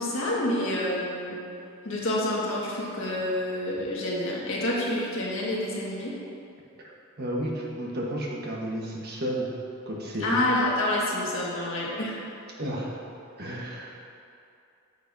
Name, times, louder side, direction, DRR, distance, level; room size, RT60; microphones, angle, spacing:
voice 1, 0.0-1.4 1.8-6.1 10.2-12.2, left 1 dB, 65° left, -5 dB, 1.7 m, -28 dB
voice 2, 7.2-9.5 9.9-10.4 12.6-12.9 13.4-14.1, equal, 50° right, -3 dB, 1.2 m, -32 dB
9.1 x 8.0 x 2.7 m, 2.7 s
head